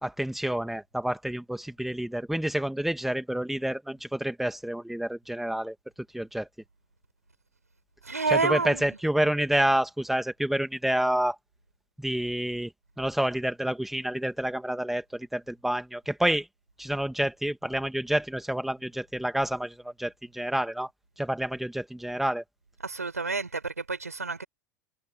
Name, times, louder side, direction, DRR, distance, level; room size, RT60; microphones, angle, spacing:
voice 1, 0.0-5.8 6.1-6.5 8.3-11.4 12.0-12.7 13.0-16.5 16.8-20.9 21.2-22.4, right 1 dB, 5° right, 2.6 m, -28 dB
voice 2, 8.0-8.9 22.8-24.4, right 4 dB, 85° right, 6.8 m, -29 dB
figure-of-eight pair, 80°, 8 cm